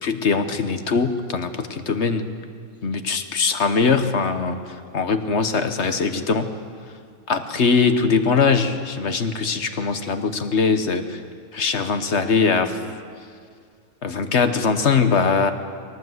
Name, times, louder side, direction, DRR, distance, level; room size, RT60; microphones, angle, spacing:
voice 1, 0.0-2.3 2.8-6.5 7.3-11.2 11.5-12.8 14.0-15.5, left 5 dB, 55° left, 8 dB, 1.4 m, -21 dB
22.5 x 18.0 x 7.8 m, 2.2 s
omnidirectional pair, 1.5 m